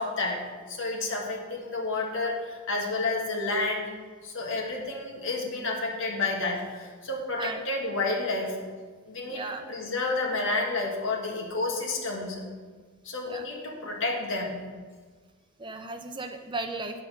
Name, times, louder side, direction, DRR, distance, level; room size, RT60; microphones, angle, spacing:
voice 1, 0.0-3.9 4.2-8.6 9.1-12.4 13.0-14.6, left 3 dB, 60° left, -1 dB, 1.7 m, -30 dB
voice 2, 9.3-9.6 13.3-13.5 15.6-17.0, right 3 dB, 20° right, 5 dB, 0.6 m, -35 dB
8.5 x 6.5 x 5.3 m, 1.5 s
head